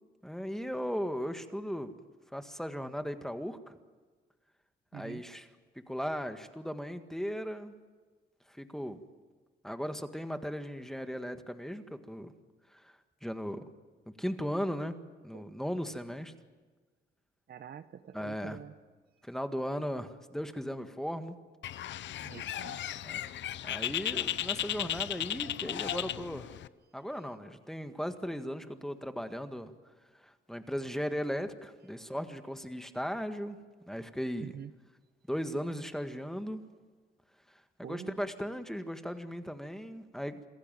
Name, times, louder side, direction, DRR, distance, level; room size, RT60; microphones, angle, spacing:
voice 1, 0.2-1.9 2.3-3.8 4.9-5.5 5.9-7.7 8.6-9.0 9.6-12.3 12.7-12.9 13.2-13.7 14.1-15.0 15.2-16.3 18.1-18.6 19.2-21.4 23.0-23.2 23.6-26.5 26.9-29.7 30.2-33.6 33.9-34.6 35.3-36.6 37.8-40.4, equal, ahead, 8 dB, 1.8 m, -37 dB
voice 2, 4.9-5.2 15.3-15.5 17.5-18.7 22.2-22.8 34.4-34.7 37.8-38.2, right 8 dB, 55° right, 12 dB, 1.0 m, -46 dB
Bird, 21.6-26.7, left 11 dB, 65° left, 0.8 m, -35 dB
27.0 x 16.0 x 9.2 m, 1.4 s
cardioid pair, 90°, 20 cm